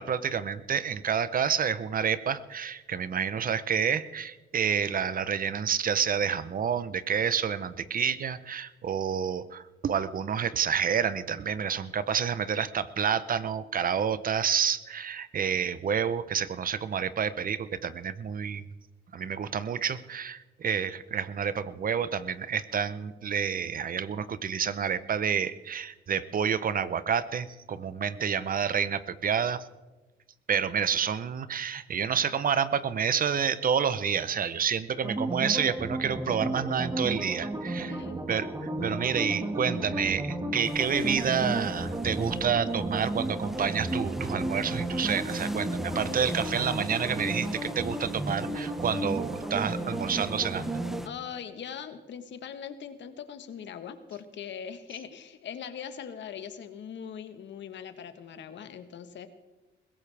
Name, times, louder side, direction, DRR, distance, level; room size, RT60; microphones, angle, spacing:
voice 1, 0.0-18.6 19.1-29.7 30.5-38.0 38.3-50.7, right 7 dB, 45° right, 15 dB, 0.8 m, -29 dB
sound 1, 35.0-51.0, right 1 dB, 20° right, 1.7 m, -33 dB
voice 2, 37.9-38.2 51.0-59.3, left 8 dB, 65° left, 10 dB, 1.3 m, -41 dB
sound 2, 40.6-51.1, equal, ahead, 0.8 m, -46 dB
21.5 x 16.5 x 3.4 m, 1.1 s
cardioid pair, 90°, 20 cm